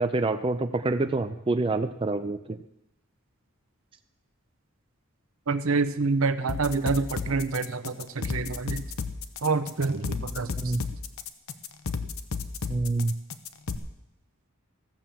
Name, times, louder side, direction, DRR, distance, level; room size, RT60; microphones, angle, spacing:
voice 1, 0.0-2.6 10.6-10.8 12.7-13.1, right 2 dB, 25° right, 8 dB, 0.4 m, -27 dB
voice 2, 5.5-8.8 9.4-10.5, right 4 dB, 75° right, 11 dB, 0.8 m, -27 dB
sound 1, 6.5-13.8, left 4 dB, 75° left, 0.8 m, -33 dB
14.5 x 6.9 x 7.6 m, 0.87 s
head